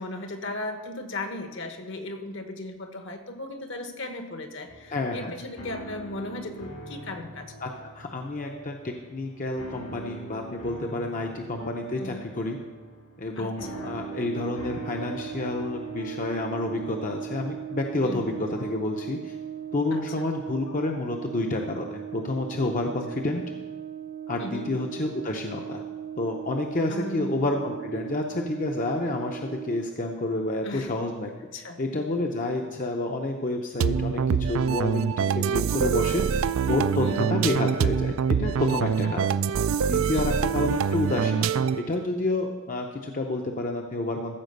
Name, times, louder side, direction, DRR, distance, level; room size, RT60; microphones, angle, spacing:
voice 1, 0.0-7.7 11.9-12.3 13.4-14.0 18.0-18.3 19.9-20.0 24.4-24.7 26.9-27.5 30.6-30.9 31.5-31.8 37.0-37.4 39.0-39.2 40.1-40.3, left 2 dB, 60° left, 6 dB, 1.1 m, -37 dB
sound 1, 4.7-20.9, right 2 dB, 80° left, 1.7 m, -44 dB
voice 2, 4.9-5.3 7.6-12.6 13.2-19.3 19.7-23.4 24.3-25.8 26.2-39.3 39.9-44.4, left 2 dB, 40° left, 2 dB, 0.7 m, -29 dB
Brass instrument, 13.6-30.0, right 9 dB, 35° right, 0.6 m, -38 dB
sound 2, 33.8-41.9, right 7 dB, 70° right, 0.3 m, -25 dB
14.0 x 4.9 x 6.6 m, 1.3 s
head